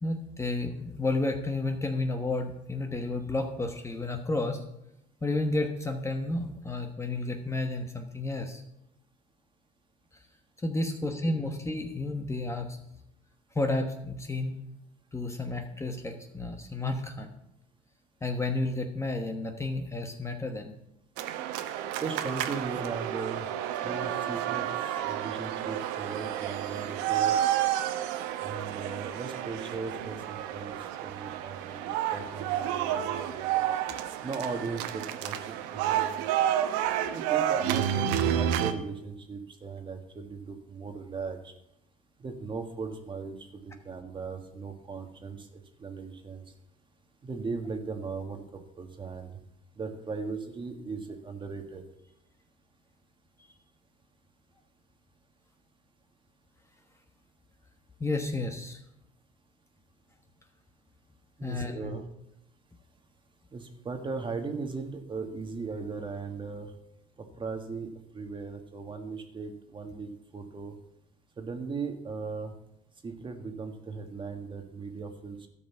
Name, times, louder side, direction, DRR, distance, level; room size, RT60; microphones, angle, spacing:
voice 1, 0.0-4.6 5.2-8.6 10.6-12.8 13.5-14.6 15.1-17.3 18.2-20.7 58.0-58.8 61.4-62.0, left 2 dB, 15° left, 4 dB, 1.1 m, -31 dB
sound 1, 21.2-38.7, right 11 dB, 85° right, 0.9 m, -30 dB
voice 2, 22.0-23.5 23.8-27.3 28.4-30.8 31.0-33.7 34.2-36.3 37.1-41.5 42.2-43.5 43.8-45.5 45.8-46.4 47.2-49.3 49.8-51.8 61.4-62.0 63.5-66.7 67.4-70.8 71.4-72.5 73.0-75.4, right 4 dB, 25° right, 5 dB, 1.6 m, -38 dB
13.0 x 5.4 x 7.0 m, 0.84 s
supercardioid pair, 105°, 18 cm